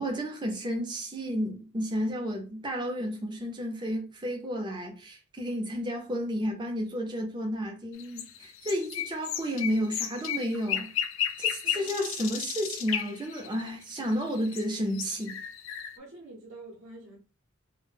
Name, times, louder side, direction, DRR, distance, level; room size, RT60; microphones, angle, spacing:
voice 1, 0.0-10.9 11.4-15.4, equal, 20° right, 0.5 m, -32 dB
sound 1, 7.9-14.6 14.9-16.0, left 9 dB, 75° left, 0.3 m, -34 dB
voice 2, 11.6-12.0 16.0-17.2, right 2 dB, 70° right, 0.6 m, -47 dB
2.0 x 2.0 x 3.1 m
head